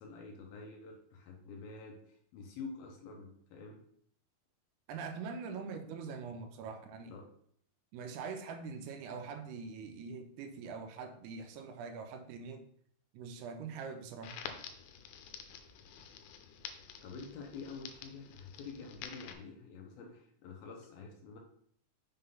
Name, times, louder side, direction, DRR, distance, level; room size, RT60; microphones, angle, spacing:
voice 1, 0.0-3.8 7.1-7.3 17.0-21.4, left 4 dB, 70° left, 1 dB, 2.5 m, -48 dB
voice 2, 4.9-7.1 7.9-12.7 13.1-14.4, right 5 dB, 80° right, 6 dB, 2.5 m, -43 dB
Crackle, 14.2-19.3, left 8 dB, 90° left, 2.9 m, -49 dB
6.5 x 3.8 x 5.5 m, 0.64 s
omnidirectional pair, 4.8 m